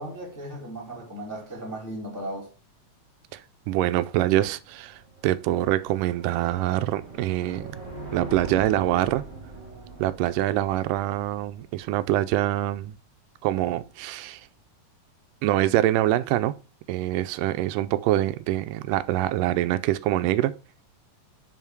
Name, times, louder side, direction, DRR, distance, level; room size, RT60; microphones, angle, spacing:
voice 1, 0.0-2.5, right 1 dB, 10° left, 1.3 m, -36 dB
voice 2, 3.7-7.8 8.1-9.2 10.0-12.9 13.4-14.4 15.4-16.6 16.9-20.6, right 14 dB, 85° right, 2.1 m, -25 dB
sound 1, 4.5-11.9, right 2 dB, 25° right, 1.9 m, -41 dB
5.6 x 5.2 x 4.6 m
omnidirectional pair, 3.8 m